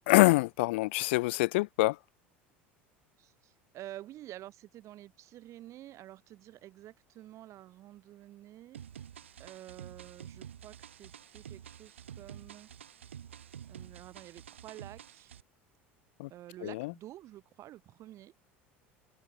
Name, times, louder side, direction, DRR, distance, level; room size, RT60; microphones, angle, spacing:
voice 1, 0.1-2.0 16.2-16.3 16.6-16.9, left 22 dB, 70° left, 0.3 m, -25 dB
voice 2, 3.2-8.8 9.4-12.7 13.7-15.3 16.3-18.3, right 14 dB, 50° right, 6.4 m, -49 dB
sound 1, 8.7-15.4, right 9 dB, 90° right, 0.6 m, -49 dB
hypercardioid pair, 75°, 6 cm